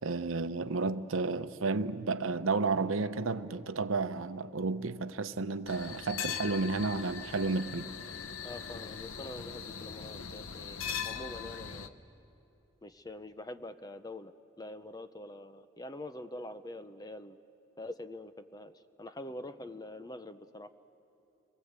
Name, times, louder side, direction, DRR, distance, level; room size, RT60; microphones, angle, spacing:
voice 1, 0.0-7.9, right 3 dB, 85° right, 0.8 m, -32 dB
sound 1, 5.7-11.9, left 7 dB, 85° left, 0.9 m, -40 dB
voice 2, 8.4-12.0 12.8-17.4 17.8-18.7 19.0-20.7, left 1 dB, 20° left, 0.6 m, -45 dB
29.5 x 22.5 x 8.1 m
head